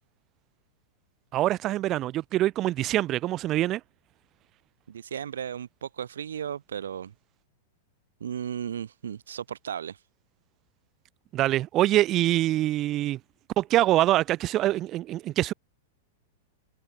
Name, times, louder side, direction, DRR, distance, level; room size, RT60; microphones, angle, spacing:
voice 1, 1.3-3.8 11.3-13.2 13.6-15.5, right 14 dB, 35° right, 1.8 m, -24 dB
voice 2, 4.9-7.1 8.2-10.0, right 8 dB, 90° right, 4.5 m, -35 dB
hypercardioid pair, 125°, 0 cm